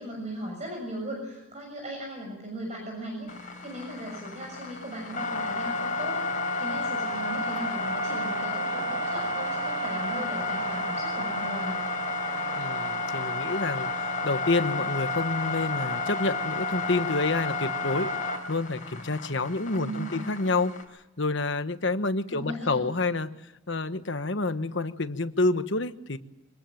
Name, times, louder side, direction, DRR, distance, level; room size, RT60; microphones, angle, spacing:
voice 1, 0.0-11.8 19.7-20.4 22.3-22.8, right 1 dB, 30° right, 1 dB, 6.7 m, -37 dB
sound 1, 3.3-20.8, left 2 dB, 40° left, 4.6 m, -31 dB
voice 2, 12.5-13.9 14.2-18.1 18.5-20.7 21.2-23.3 23.7-26.2, left 3 dB, 55° left, 10 dB, 1.2 m, -28 dB
25.5 x 19.0 x 9.1 m, 0.95 s
head